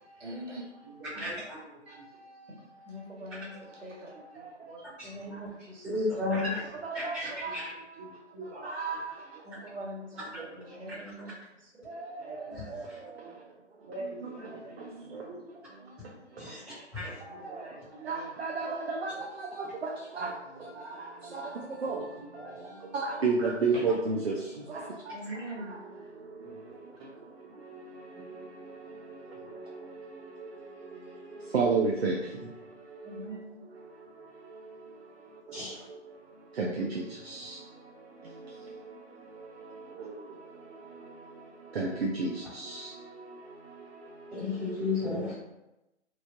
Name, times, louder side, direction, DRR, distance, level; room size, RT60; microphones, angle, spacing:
voice 1, 0.2-0.7 1.1-1.2 2.8-4.1 4.8-6.2 9.4-11.8 14.2-15.2 15.8-16.2 23.7-23.8 25.1-25.8 33.0-33.5, right 1 dB, 85° right, -4 dB, 1.4 m, -43 dB
voice 2, 0.8-2.0 3.5-3.6 4.0-4.8 5.2-5.4 6.3-6.7 7.2-9.0 9.3-9.6 10.2-11.2 12.2-12.8 13.9-15.5 17.0-18.6 20.2-20.7 21.8-22.6 26.6-26.7 32.6-32.7 37.1-37.4, right 2 dB, 30° right, -9 dB, 0.9 m, -48 dB
voice 3, 5.9-6.6 6.9-7.6 12.5-12.6 16.4-16.6 16.9-17.1 35.5-35.7 44.3-45.3, left 3 dB, 10° right, -16 dB, 1.4 m, -32 dB
voice 4, 18.1-19.1 20.2-20.3 21.8-22.0 22.9-24.3 31.5-32.1 36.6-36.9 41.8-41.9 42.2-42.3, right 4 dB, 60° right, -1 dB, 0.5 m, -28 dB
3.1 x 2.6 x 2.5 m, 0.94 s
hypercardioid pair, 165°, 36 cm